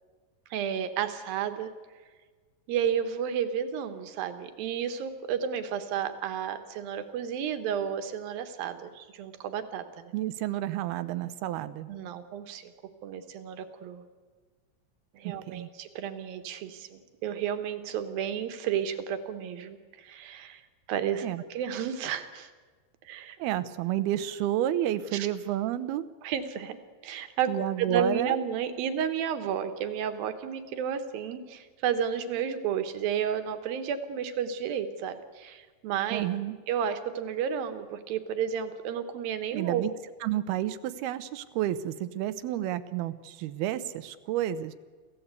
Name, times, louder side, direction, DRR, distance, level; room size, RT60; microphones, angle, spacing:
voice 1, 0.5-1.7 2.7-10.1 11.9-12.7 13.0-14.0 15.1-20.6 20.9-22.5 23.0-23.4 25.1-25.3 26.2-26.8 27.0-36.3 36.7-39.9, right 8 dB, 75° right, 9 dB, 3.0 m, -32 dB
voice 2, 10.1-11.9 15.2-15.7 21.2-21.4 23.4-26.1 27.5-28.4 36.1-36.6 39.5-39.9 40.2-44.7, right 12 dB, 90° right, 13 dB, 2.8 m, -30 dB
26.5 x 15.5 x 8.3 m, 1.5 s
omnidirectional pair, 4.3 m